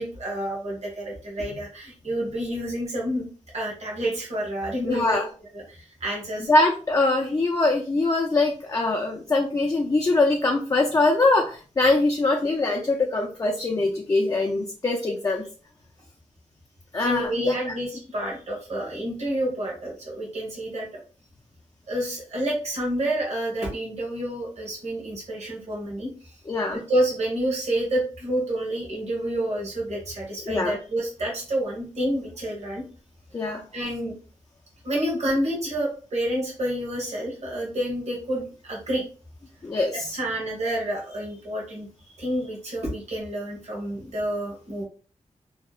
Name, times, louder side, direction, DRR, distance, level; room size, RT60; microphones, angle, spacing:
voice 1, 0.0-5.3 5.5-6.5 17.0-20.9 21.9-26.3 26.7-32.8 33.7-34.1 34.8-39.0 40.1-41.9 42.2-44.8, right 1 dB, 60° right, -2 dB, 1.1 m, -29 dB
voice 2, 4.8-5.3 6.5-15.4 16.9-17.6 26.5-26.8 30.5-30.8 33.3-33.6 39.6-40.1, left 2 dB, 25° left, 1 dB, 0.4 m, -23 dB
2.7 x 2.0 x 2.3 m, 0.39 s
wide cardioid pair, 110°, 13 cm